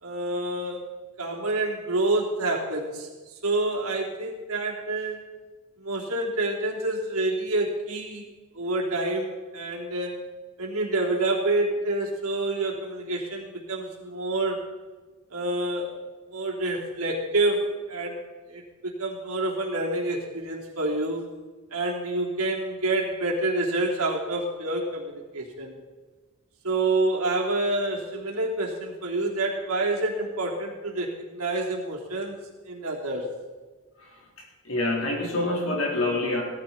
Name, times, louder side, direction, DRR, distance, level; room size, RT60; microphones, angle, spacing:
voice 1, 0.0-0.9 1.2-3.1 3.4-5.2 5.8-8.2 8.5-10.2 10.6-14.6 15.3-15.9 16.3-18.2 18.5-21.3 21.7-25.8 26.6-32.4 32.7-33.3, right 2 dB, 80° right, -1 dB, 3.3 m, -28 dB
voice 2, 34.4-36.4, left 2 dB, 65° left, -1 dB, 3.9 m, -26 dB
17.5 x 14.0 x 4.3 m, 1.3 s
head